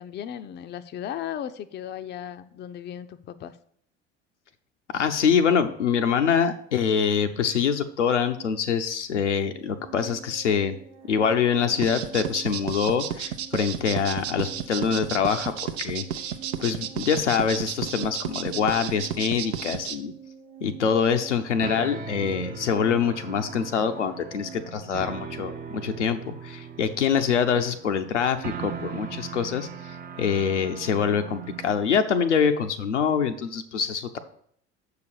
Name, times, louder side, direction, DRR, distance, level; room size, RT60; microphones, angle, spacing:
voice 1, 0.0-3.6, left 10 dB, 30° left, 10 dB, 0.5 m, -36 dB
voice 2, 4.9-10.8 11.1-15.5 15.8-16.0 16.6-20.1 20.6-29.7 30.2-34.2, left 7 dB, 80° left, 6 dB, 0.6 m, -25 dB
sound 1, 9.5-24.7, right 7 dB, 50° right, 1.0 m, -47 dB
sound 2, 11.8-19.9, right 9 dB, 70° right, 0.6 m, -32 dB
sound 3, 21.6-31.8, right 6 dB, 25° right, 0.6 m, -39 dB
6.8 x 4.8 x 6.6 m, 0.64 s
figure-of-eight pair, 60°, 35 cm